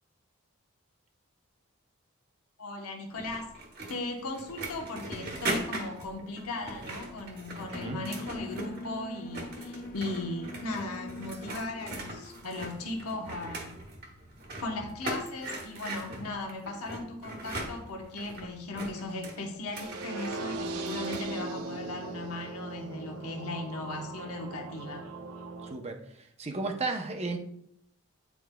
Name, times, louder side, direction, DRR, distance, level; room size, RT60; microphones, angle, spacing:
voice 1, 2.6-3.5 3.9-13.8 14.6-25.1, left 2 dB, 90° left, 1 dB, 1.0 m, -37 dB
sound 1, 3.2-8.9 9.2-21.3, right 2 dB, 45° right, 1.1 m, -40 dB
Alarm, 7.7-14.9, left 2 dB, 35° left, 0.4 m, -44 dB
sound 2, 19.7-25.7, right 3 dB, 80° right, 0.6 m, -39 dB
voice 2, 25.6-26.0 26.4-27.4, right 3 dB, 30° right, 5 dB, 0.6 m, -33 dB
9.2 x 4.5 x 2.2 m, 0.74 s
head